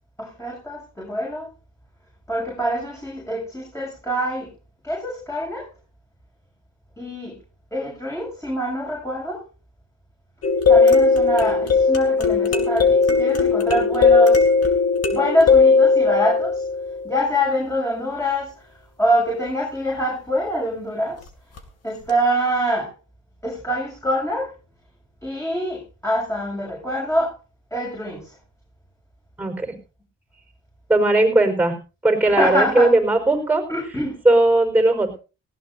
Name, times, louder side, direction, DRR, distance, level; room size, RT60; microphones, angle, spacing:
voice 1, 0.2-1.5 2.3-4.5 4.8-5.7 7.0-7.4 7.7-9.5 10.7-14.5 15.1-16.6 17.0-18.7 19.0-21.3 21.8-22.9 23.4-24.5 25.2-27.4 27.7-28.4 32.4-32.9 33.7-34.2, equal, 10° left, -2 dB, 7.3 m, -25 dB
sound 1, 10.4-17.3 21.6-21.7 22.1-22.2, left 4 dB, 55° left, 2.7 m, -17 dB
voice 2, 29.4-29.8 30.9-31.7 32.0-33.6 34.2-35.1, right 2 dB, 5° right, 5 dB, 4.8 m, -18 dB
18.5 x 16.5 x 2.7 m, 0.33 s
cardioid pair, 90°, 30 cm